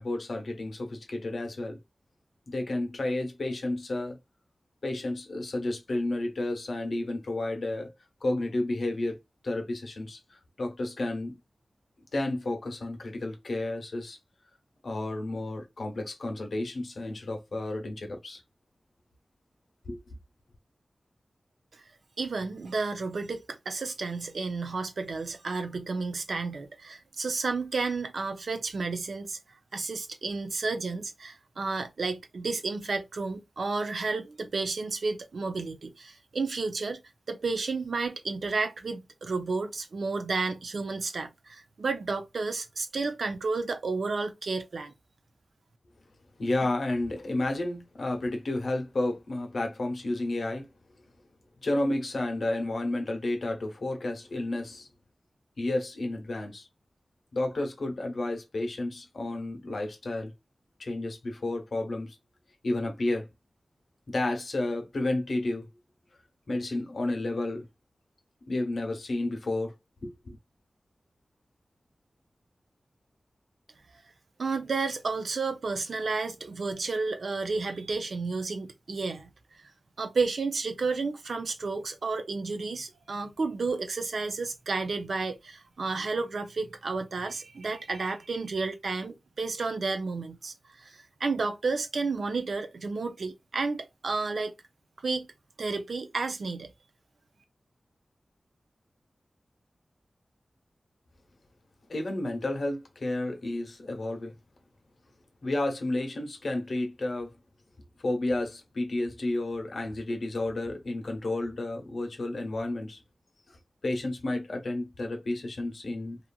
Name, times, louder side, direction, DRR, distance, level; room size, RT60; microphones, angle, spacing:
voice 1, 0.0-1.8 2.5-4.2 4.8-7.9 8.2-9.2 9.4-11.3 12.1-14.2 14.8-18.4 19.9-20.0 46.4-50.7 51.6-54.9 55.6-56.7 57.3-60.3 60.8-62.2 62.6-63.3 64.1-65.7 66.5-67.7 68.5-69.7 70.0-70.4 101.9-104.3 105.4-107.3 108.0-113.0 113.5-113.6 113.8-116.2, left 2 dB, 70° left, 0.8 m, -31 dB
voice 2, 22.2-29.4 29.7-37.0 37.3-44.9 74.4-79.3 79.6-79.7 80.0-94.5 95.0-95.3 95.6-96.7, right 4 dB, 80° right, 0.5 m, -31 dB
3.0 x 2.4 x 2.3 m
wide cardioid pair, 80°, 0 cm